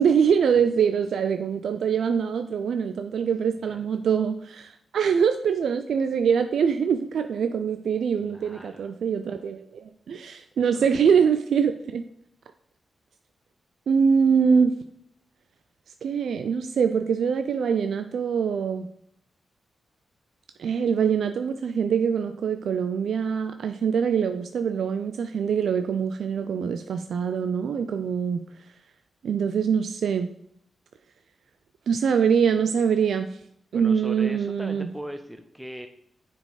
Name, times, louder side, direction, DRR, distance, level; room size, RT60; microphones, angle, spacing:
voice 1, 0.0-12.1 13.9-14.7 16.0-18.9 20.6-28.4 29.2-30.3 31.9-33.3 33.7-34.9, right 6 dB, 80° right, 9 dB, 0.3 m, -24 dB
voice 2, 8.2-8.9 10.6-11.0 33.7-35.9, equal, 5° right, 6 dB, 0.6 m, -40 dB
6.5 x 4.3 x 4.8 m, 0.73 s
cardioid pair, 55°, 0 cm